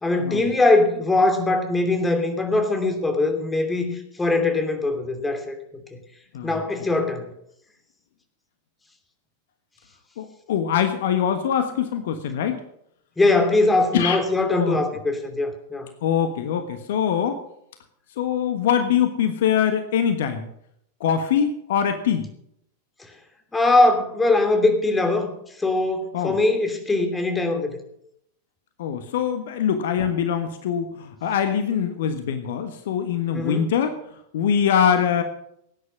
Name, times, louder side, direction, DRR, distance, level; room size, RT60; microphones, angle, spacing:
voice 1, 0.0-5.6 6.4-7.3 13.2-15.9 23.5-25.3 25.6-27.8 33.3-33.7, left 2 dB, 10° left, 6 dB, 3.0 m, -21 dB
voice 2, 10.2-12.6 13.9-14.2 14.5-14.8 16.0-17.4 18.2-20.5 21.0-22.3 26.1-26.3 28.8-33.9 34.3-35.2, left 8 dB, 55° left, 8 dB, 1.4 m, -23 dB
18.0 x 9.8 x 6.2 m, 0.74 s
figure-of-eight pair, 90°, 0 cm